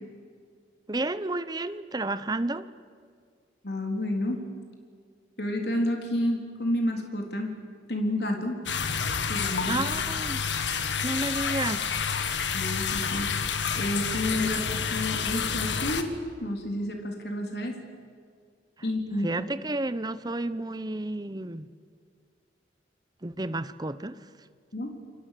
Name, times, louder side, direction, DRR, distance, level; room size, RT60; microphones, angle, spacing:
voice 1, 0.9-2.7 9.6-10.4 11.0-11.9 19.2-21.7 23.2-24.2, right 2 dB, 20° right, 14 dB, 0.8 m, -31 dB
voice 2, 3.6-4.4 5.4-7.5 7.9-8.6 9.3-9.8 12.5-13.3 13.8-16.1 16.4-17.8 18.8-19.3 24.7-24.9, left 1 dB, 65° left, 2 dB, 3.8 m, -30 dB
sound 1, 8.7-16.0, left 6 dB, 90° left, 1.7 m, -29 dB
29.0 x 23.0 x 6.8 m, 2.1 s
head